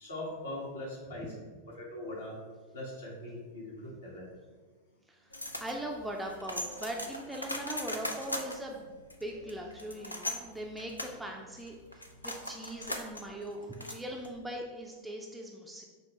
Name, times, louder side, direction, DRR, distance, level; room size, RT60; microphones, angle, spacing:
voice 1, 0.0-1.3 1.7-2.4 2.7-4.3, left 1 dB, 70° left, -4 dB, 1.4 m, -41 dB
sound 1, 5.3-14.5, left 1 dB, 85° left, 0.4 m, -40 dB
voice 2, 5.6-15.8, right 1 dB, 5° right, 0 dB, 0.4 m, -40 dB
5.3 x 2.3 x 4.2 m, 1.4 s
figure-of-eight pair, 90°, 0 cm